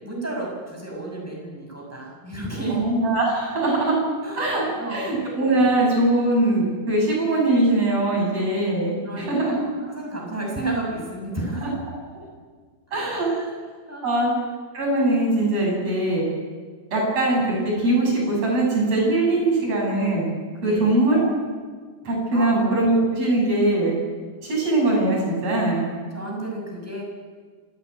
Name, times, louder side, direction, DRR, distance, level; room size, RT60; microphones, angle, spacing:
voice 1, 0.0-2.8 4.2-4.5 4.8-5.2 9.0-11.7 12.9-13.5 13.9-14.3 20.6-20.9 22.3-22.9 26.1-27.0, right 2 dB, 5° right, -2 dB, 5.8 m, -32 dB
voice 2, 2.7-4.0 4.4-9.6 11.6-11.7 12.9-13.3 14.0-14.3 14.7-16.3 16.9-20.3 20.6-21.3 22.0-23.9 24.4-25.8, right 2 dB, 30° right, -2 dB, 7.7 m, -21 dB
26.5 x 12.0 x 9.6 m, 1.5 s
omnidirectional pair, 5.9 m